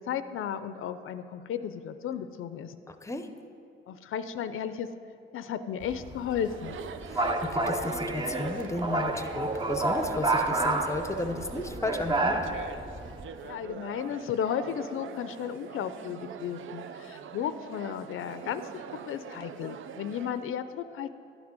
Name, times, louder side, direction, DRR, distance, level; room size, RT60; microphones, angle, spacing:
voice 1, 0.0-2.8 3.9-4.9 5.3-6.8 13.4-18.7 19.1-21.1, left 8 dB, 80° left, 11 dB, 0.5 m, -34 dB
voice 2, 2.9-3.3 7.1-12.4, left 2 dB, 15° left, 8 dB, 0.6 m, -34 dB
sound 1, 5.8-13.2, right 2 dB, 20° right, 0.7 m, -30 dB
Chatter, 6.3-20.4, right 7 dB, 70° right, 0.6 m, -44 dB
11.5 x 6.1 x 8.9 m, 2.4 s
wide cardioid pair, 150°, 21 cm